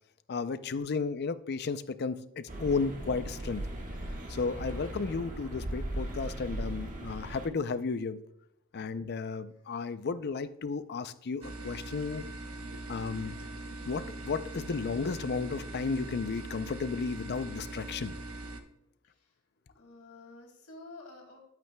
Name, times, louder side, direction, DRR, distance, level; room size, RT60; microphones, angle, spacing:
voice 1, 0.3-3.6 4.3-8.2 8.7-12.2 12.9-13.3 13.8-18.1, left 4 dB, 50° left, 13 dB, 0.5 m, -33 dB
sound 1, 2.5-7.5, right 1 dB, 40° right, 1.5 m, -38 dB
sound 2, 11.4-18.6, right 2 dB, 75° right, 1.0 m, -42 dB
voice 2, 19.0-19.3 19.7-21.4, left 2 dB, 85° left, 1 dB, 2.4 m, -51 dB
12.0 x 8.2 x 2.3 m, 0.81 s
head